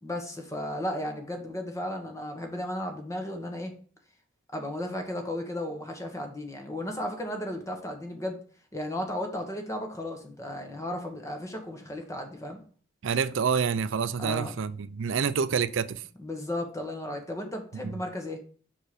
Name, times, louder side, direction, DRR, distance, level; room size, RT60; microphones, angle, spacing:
voice 1, 0.0-3.7 4.5-8.4 8.7-12.6 14.2-14.6 16.2-18.4, left 1 dB, 15° left, 1.2 m, -34 dB
voice 2, 13.0-16.0 17.8-18.0, right 6 dB, 70° right, 0.4 m, -27 dB
5.8 x 4.5 x 4.9 m
head